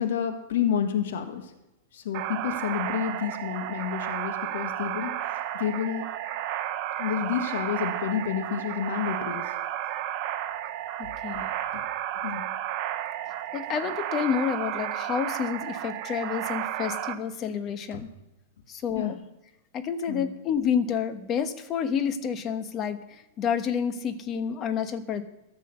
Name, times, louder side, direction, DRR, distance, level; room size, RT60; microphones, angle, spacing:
voice 1, 0.0-1.5 1.9-5.1 5.5-6.1 7.0-9.4 11.7-11.8 12.2-12.5 17.9-18.0 19.0-19.1 20.1-20.3, left 8 dB, 70° left, 7 dB, 1.5 m, -29 dB
sound 1, 2.1-17.1, right 12 dB, 45° right, 1.0 m, -32 dB
voice 2, 11.0-11.5 13.5-18.1 18.7-19.2 19.7-25.2, left 7 dB, 30° left, 9 dB, 1.2 m, -29 dB
14.0 x 7.5 x 6.9 m, 0.95 s
hypercardioid pair, 135°, 0 cm